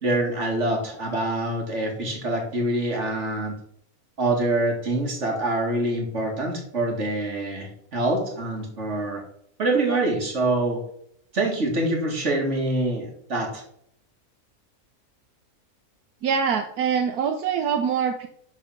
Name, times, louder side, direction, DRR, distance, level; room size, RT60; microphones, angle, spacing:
voice 1, 0.0-3.6 4.2-9.2 9.6-10.8 11.3-13.6, right 2 dB, 50° right, 1 dB, 2.5 m, -25 dB
voice 2, 16.2-18.3, right 7 dB, 80° right, 7 dB, 1.3 m, -24 dB
12.0 x 4.1 x 5.8 m, 0.69 s
omnidirectional pair, 1.6 m